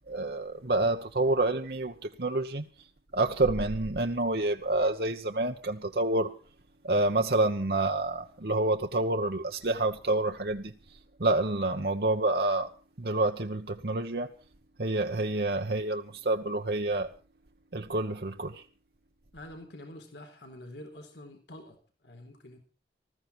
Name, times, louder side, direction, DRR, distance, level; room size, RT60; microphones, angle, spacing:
voice 1, 0.1-2.6 3.1-6.3 6.8-10.7 11.2-12.7 13.0-14.3 14.8-17.1 17.7-18.6, right 2 dB, 60° right, 1.1 m, -28 dB
voice 2, 19.3-22.6, left 1 dB, 80° left, 4.1 m, -47 dB
19.5 x 15.0 x 4.5 m
head